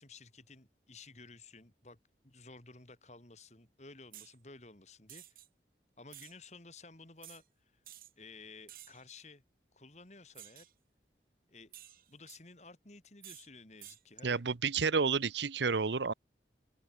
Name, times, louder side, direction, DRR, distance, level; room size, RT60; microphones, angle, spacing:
voice 1, 0.0-2.0 2.2-5.4 6.0-7.8 8.2-9.4 9.7-10.7 11.5-11.8 12.1-14.4, left 3 dB, 40° left, 2.7 m, -54 dB
sound 1, 4.1-4.3 5.1-5.5 6.1-6.3 7.2-7.4 7.8-8.1 8.7-9.0 10.3-10.7 11.7-12.4 13.2-13.5 13.8-14.0, right 13 dB, 55° right, 6.3 m, -52 dB
voice 2, 14.2-16.1, right 5 dB, 85° right, 0.8 m, -30 dB
open air
head